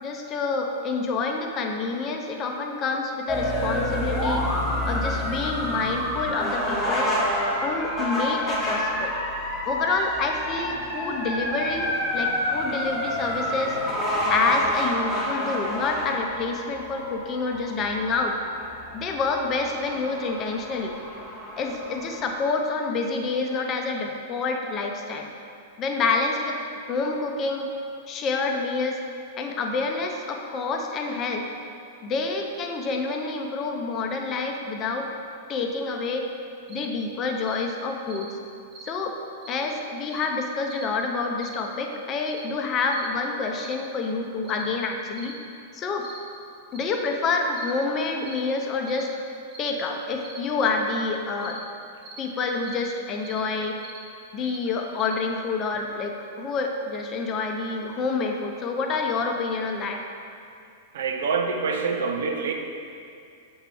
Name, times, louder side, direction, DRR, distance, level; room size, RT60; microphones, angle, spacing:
voice 1, 0.0-4.4 4.8-7.1 7.6-9.1 9.7-13.8 14.3-18.4 18.9-20.9 21.6-25.3 25.8-26.6 26.9-27.7 28.1-29.0 29.4-31.4 32.0-35.1 35.5-36.3 36.7-38.3 38.8-39.2 39.5-45.4 45.7-46.1 46.7-49.2 49.6-51.6 52.2-53.8 54.3-60.0, left 4 dB, 30° left, 3 dB, 0.6 m, -28 dB
sound 1, 3.3-22.4, left 1 dB, 10° left, 1.2 m, -28 dB
sound 2, 36.7-36.9 37.4-37.6 38.1-38.3 38.7-38.9 39.4-39.6 40.1-40.3 40.7-40.9 41.4-41.6 42.2-42.4 42.9-43.1 43.6-43.8 44.4-44.7 45.1-45.4 46.0-46.2 46.7-46.9 47.5-47.8 48.2-48.4 48.8-49.1 49.5-49.7 50.2-50.4 51.4-51.6 52.0-52.2 52.6-52.9 53.2-53.4 53.8-54.0 54.4-54.6 55.0-55.2, right 3 dB, 25° right, 0.9 m, -43 dB
voice 2, 60.9-62.5, right 5 dB, 65° right, 4 dB, 0.6 m, -26 dB
7.4 x 4.4 x 3.4 m, 2.5 s
figure-of-eight pair, 100°, 0 cm